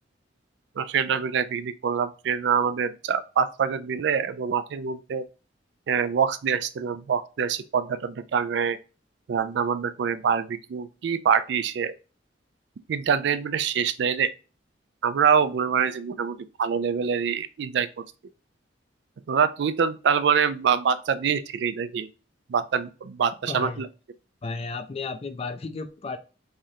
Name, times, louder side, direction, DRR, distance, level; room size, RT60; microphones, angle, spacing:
voice 1, 0.8-5.2 5.9-8.8 9.3-11.9 12.9-14.3 15.0-17.9 19.3-22.1 22.5-23.9, right 7 dB, 65° right, 0.3 m, -25 dB
voice 2, 23.5-23.9 24.4-26.2, left 4 dB, 35° left, 0.4 m, -33 dB
3.7 x 3.2 x 2.7 m
head